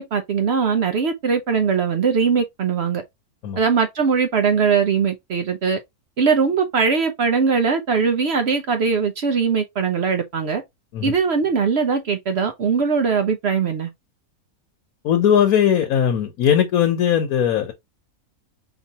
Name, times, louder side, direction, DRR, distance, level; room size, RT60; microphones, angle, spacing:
voice 1, 0.0-3.0 3.6-5.8 6.2-10.6 11.0-13.9, right 5 dB, 55° right, 0.8 m, -20 dB
voice 2, 15.0-17.7, left 9 dB, 75° left, 1.2 m, -19 dB
4.2 x 3.0 x 2.8 m
omnidirectional pair, 1.6 m